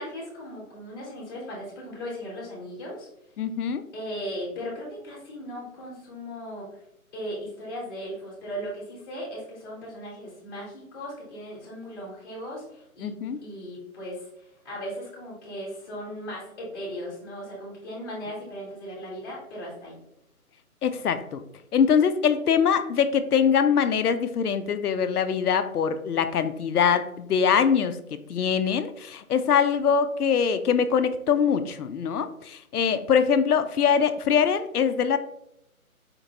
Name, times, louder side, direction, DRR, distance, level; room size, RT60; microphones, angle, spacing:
voice 1, 0.0-3.1 3.9-6.8 7.1-13.1 13.4-20.0, equal, 15° left, -5 dB, 1.0 m, -37 dB
voice 2, 3.4-3.8 13.0-13.4 20.8-21.4 21.7-35.2, left 7 dB, 85° left, 10 dB, 0.6 m, -23 dB
4.3 x 2.7 x 2.8 m, 0.79 s
figure-of-eight pair, 155°, 44 cm